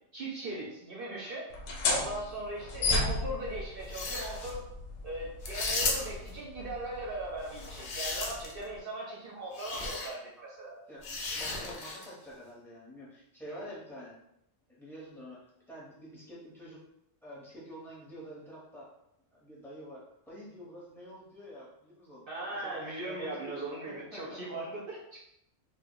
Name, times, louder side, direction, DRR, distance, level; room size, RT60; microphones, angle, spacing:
voice 1, 0.1-1.5 1.8-4.6 5.0-10.8 22.3-25.2, right 2 dB, 60° right, -4 dB, 0.6 m, -39 dB
sound 1, 1.5-8.8, left 3 dB, 90° left, 0.9 m, -35 dB
sound 2, 3.8-4.5 5.4-6.3 7.5-8.6 9.5-10.1 11.0-12.1, left 3 dB, 60° left, 0.6 m, -35 dB
voice 2, 10.9-14.2 14.7-16.8 17.2-18.9 19.3-22.2 22.5-24.5, equal, ahead, -7 dB, 0.6 m, -48 dB
2.2 x 2.0 x 3.6 m, 0.79 s
omnidirectional pair, 1.3 m